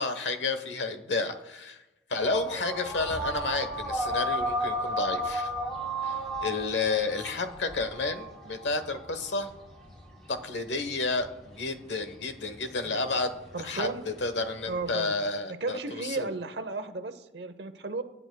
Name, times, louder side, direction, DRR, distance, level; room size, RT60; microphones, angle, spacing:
voice 1, 0.0-1.8 2.1-5.5 6.0-9.5 10.3-16.3, left 3 dB, 80° left, 8 dB, 1.1 m, -31 dB
sound 1, 2.2-15.0, right 1 dB, 5° left, 3.7 m, -34 dB
voice 2, 13.5-14.0 14.7-15.1 15.6-18.0, right 3 dB, 65° right, 9 dB, 0.9 m, -34 dB
24.5 x 8.9 x 2.3 m, 1.0 s
head